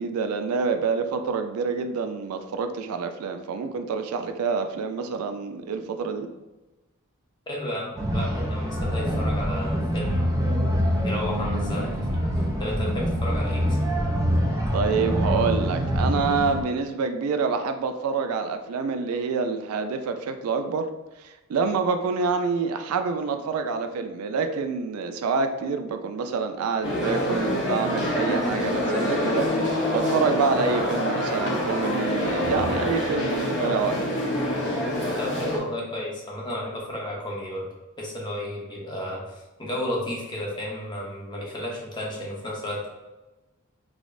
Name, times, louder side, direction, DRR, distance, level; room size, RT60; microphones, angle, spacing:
voice 1, 0.0-6.3 14.7-20.9 21.2-34.0, right 5 dB, 90° right, 8 dB, 0.3 m, -27 dB
voice 2, 7.5-10.6 11.0-12.2 12.6-13.8 35.2-37.7 38.0-42.9, left 1 dB, 20° left, -3 dB, 0.7 m, -33 dB
sound 1, 8.0-16.6, equal, 15° right, 0.4 m, -25 dB
people speaking in a hall, 26.8-35.6, left 1 dB, 55° left, 0.8 m, -26 dB
4.8 x 2.0 x 2.5 m, 1.1 s
head